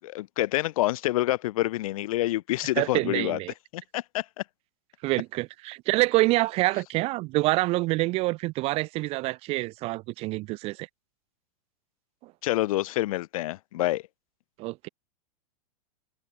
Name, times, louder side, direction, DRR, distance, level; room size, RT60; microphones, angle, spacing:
voice 1, 0.0-3.4 3.7-4.4 12.4-14.0, left 16 dB, 65° left, 1.0 m, -27 dB
voice 2, 2.8-3.5 5.0-10.9 12.2-12.3 14.6-14.9, right 21 dB, 30° right, 0.4 m, -26 dB
hypercardioid pair, 120°, 19 cm